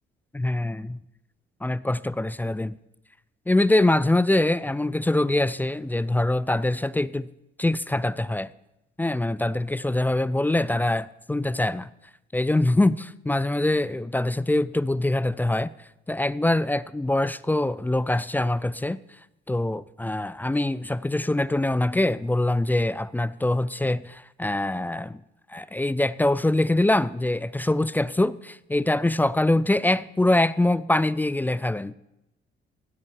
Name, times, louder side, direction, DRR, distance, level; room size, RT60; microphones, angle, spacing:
voice 1, 0.3-1.0 1.6-2.7 3.5-7.3 7.6-8.5 9.0-11.9 12.3-15.7 16.1-19.0 19.5-25.2 25.5-31.9, left 1 dB, 10° left, 0.3 m, -24 dB
15.5 x 5.4 x 7.2 m
cardioid pair, 90°, 20 cm